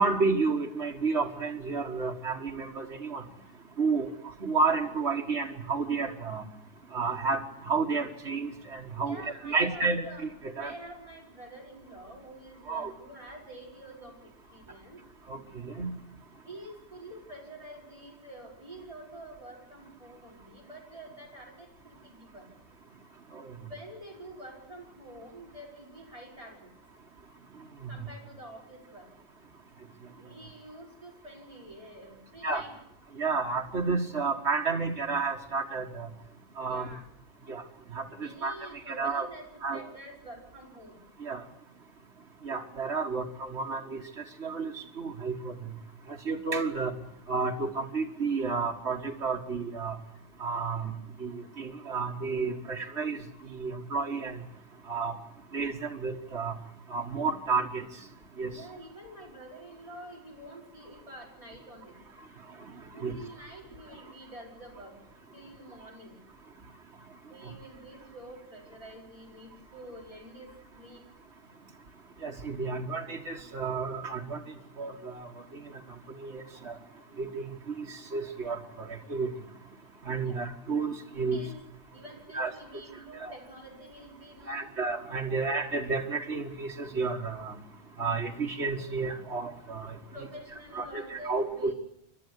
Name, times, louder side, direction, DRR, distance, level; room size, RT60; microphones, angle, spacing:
voice 1, 0.0-3.2 3.8-4.1 4.4-6.4 6.9-10.3 10.6-10.7 12.7-12.9 15.3-15.4 15.7-16.0 23.3-23.5 27.8-27.9 32.4-32.6 33.2-36.1 36.6-36.9 37.5-37.6 37.9-39.3 39.6-39.8 41.2-41.4 42.4-44.0 44.4-45.5 46.3-46.9 47.3-50.0 50.4-50.9 51.2-53.2 53.5-54.4 54.9-55.1 55.5-56.6 56.9-57.9 58.4-58.5 63.0-63.2 72.2-74.4 74.8-75.3 76.2-76.8 77.2-77.9 78.1-79.3 80.1-81.4 82.3-82.5 83.2-83.3 84.5-87.6 88.0-90.0 90.7-91.7, right 4 dB, 85° right, 1 dB, 2.1 m, -31 dB
voice 2, 9.0-10.2 10.5-15.0 16.4-22.5 23.6-26.7 27.9-29.1 30.2-32.7 36.5-37.1 38.1-39.4 39.7-41.0 58.5-62.0 62.9-65.0 65.3-66.2 67.3-71.1 80.2-80.4 81.3-81.6 81.9-84.7 90.1-91.7, right 1 dB, 30° right, -1 dB, 5.5 m, -47 dB
27.5 x 12.5 x 8.2 m, 0.79 s
omnidirectional pair, 1.1 m